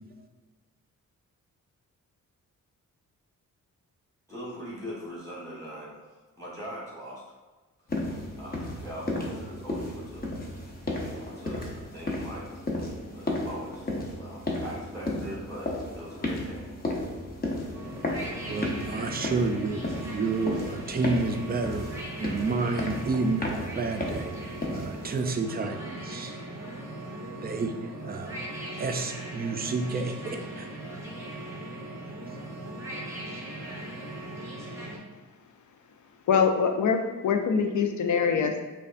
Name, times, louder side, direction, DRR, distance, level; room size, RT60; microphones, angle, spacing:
voice 1, 4.3-7.2 8.4-10.3 11.2-13.9 14.2-16.6, equal, 10° left, -5 dB, 1.1 m, -41 dB
sound 1, 7.9-25.2, left 1 dB, 30° left, 0.7 m, -34 dB
sound 2, 17.7-35.0, right 1 dB, 10° right, 0.8 m, -39 dB
voice 2, 18.5-19.8 20.1-26.3 27.2-28.4 28.8-30.7, right 3 dB, 30° right, 5 dB, 0.4 m, -30 dB
voice 3, 36.3-38.6, left 6 dB, 70° left, 5 dB, 0.5 m, -24 dB
5.3 x 2.3 x 2.5 m, 1.3 s
cardioid pair, 100°, 32 cm